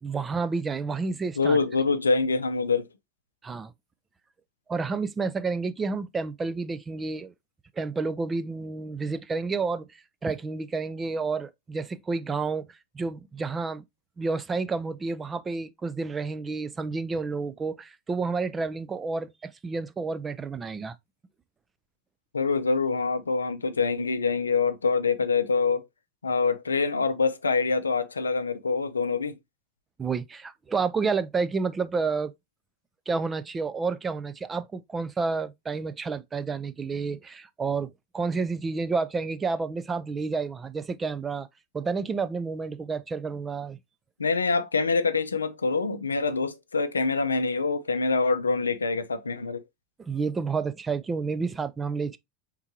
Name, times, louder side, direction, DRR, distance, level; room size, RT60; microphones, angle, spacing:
voice 1, 0.0-1.6 3.4-3.7 4.7-7.3 7.8-13.8 14.2-21.0 30.0-32.3 33.1-41.5 41.7-43.8 50.0-52.2, right 4 dB, 20° right, 0.4 m, -30 dB
voice 2, 1.4-2.9 22.3-25.8 26.2-29.3 44.2-49.6, left 4 dB, 90° left, 0.5 m, -25 dB
4.5 x 3.7 x 2.8 m
hypercardioid pair, 80°, 0 cm